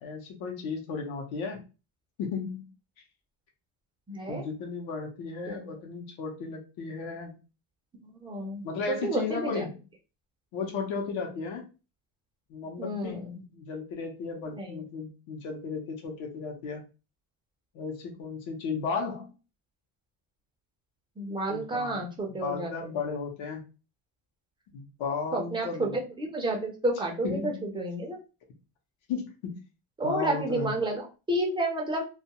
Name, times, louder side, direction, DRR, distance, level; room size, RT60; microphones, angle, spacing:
voice 1, 0.0-1.6 2.2-2.7 4.3-7.4 8.6-9.8 10.5-11.7 12.5-13.2 13.5-16.8 17.7-19.3 21.5-22.0 22.3-23.6 24.7-26.0 27.2-27.6 29.1-29.6 30.0-30.7, left 5 dB, 70° left, 1 dB, 0.8 m, -34 dB
voice 2, 4.1-4.5 5.5-5.6 8.0-9.6 12.8-13.4 14.6-14.8 21.2-22.7 25.3-25.9 26.2-28.2 30.0-31.0 31.3-32.1, right 1 dB, 10° right, 1 dB, 0.4 m, -31 dB
2.3 x 2.2 x 2.8 m, 0.31 s
cardioid pair, 145°, 49 cm